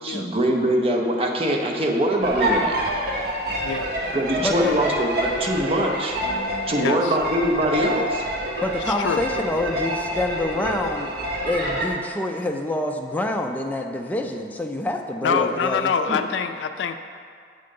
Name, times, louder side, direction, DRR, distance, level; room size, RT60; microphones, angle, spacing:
voice 1, 0.0-2.7 4.1-6.2 6.7-8.2 15.3-15.4 16.1-16.2, right 1 dB, 35° right, 1 dB, 0.6 m, -23 dB
sound 1, 2.2-11.8, right 1 dB, 60° right, 0.9 m, -27 dB
voice 2, 4.4-4.8 8.6-11.1 11.5-15.9, left 1 dB, 10° left, 3 dB, 0.3 m, -26 dB
voice 3, 6.7-7.1 9.0-9.3 15.2-17.0, left 6 dB, 85° left, 9 dB, 0.3 m, -25 dB
7.6 x 3.8 x 3.7 m, 2.2 s
head